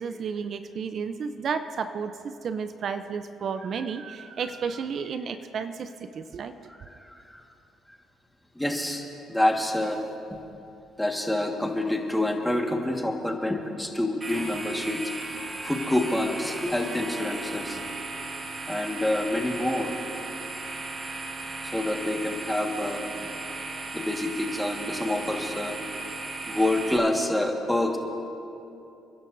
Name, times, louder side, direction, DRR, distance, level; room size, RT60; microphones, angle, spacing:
voice 1, 0.0-6.5, right 6 dB, 55° right, 10 dB, 0.5 m, -32 dB
voice 2, 6.7-7.2 8.5-10.0 10.3-10.4 11.0-15.1 15.6-17.8 18.7-19.9 21.6-23.3 23.9-25.8 26.4-28.0, left 1 dB, 5° left, 2 dB, 1.5 m, -27 dB
sound 1, 14.2-27.0, right 3 dB, 30° right, 1.2 m, -36 dB
29.5 x 11.0 x 2.6 m, 2.8 s
cardioid pair, 90°, 0 cm